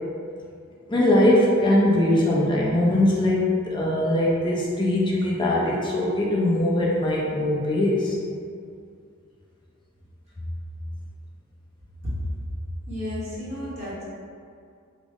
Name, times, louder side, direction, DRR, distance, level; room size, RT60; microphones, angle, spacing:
voice 1, 0.9-8.2, left 1 dB, 20° left, -4 dB, 0.5 m, -21 dB
voice 2, 12.9-14.0, left 1 dB, 30° right, -9 dB, 1.0 m, -32 dB
3.4 x 2.0 x 3.5 m, 2.3 s
head